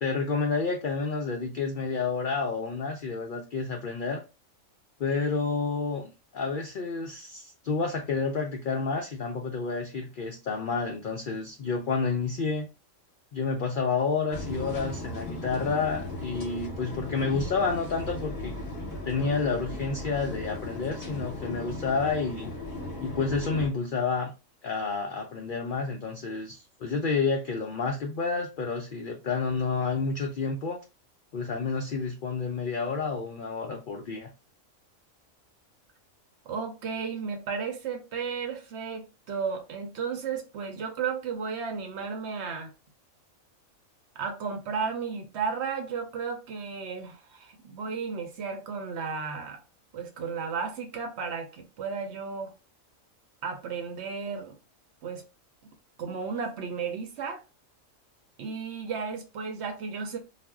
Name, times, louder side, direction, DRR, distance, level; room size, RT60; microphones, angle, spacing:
voice 1, 0.0-4.2 5.0-12.7 13.3-18.6 19.0-22.5 23.0-24.3 24.6-30.8 31.3-34.3, left 4 dB, 85° left, 0.4 m, -30 dB
sound 1, 14.3-23.7, left 2 dB, 50° left, 0.8 m, -37 dB
voice 2, 36.5-42.7 44.2-49.6 49.9-52.5 53.4-54.5 55.0-55.2 56.0-57.4 58.4-60.2, right 5 dB, 65° right, 0.8 m, -34 dB
2.4 x 2.0 x 3.4 m
omnidirectional pair, 1.4 m